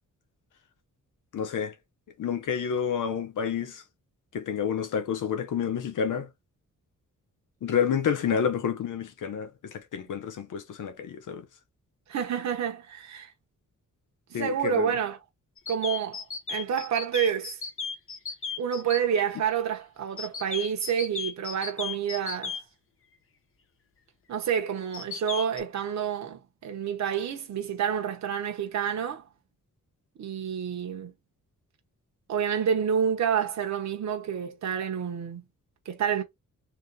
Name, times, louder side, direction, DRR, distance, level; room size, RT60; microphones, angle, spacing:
voice 1, 1.3-1.7 2.2-3.8 4.3-6.3 7.6-11.5 14.3-14.9, left 7 dB, 90° left, 0.9 m, -29 dB
voice 2, 12.1-13.3 14.3-15.2 15.7-17.6 18.6-22.6 24.3-29.3 30.2-31.1 32.3-35.4 35.9-36.2, right 8 dB, 65° right, 1.0 m, -29 dB
sound 1, 15.6-19.0 20.2-22.6 24.9-25.6, left 5 dB, 45° left, 0.8 m, -35 dB
3.4 x 2.8 x 4.0 m
wide cardioid pair, 170°, 31 cm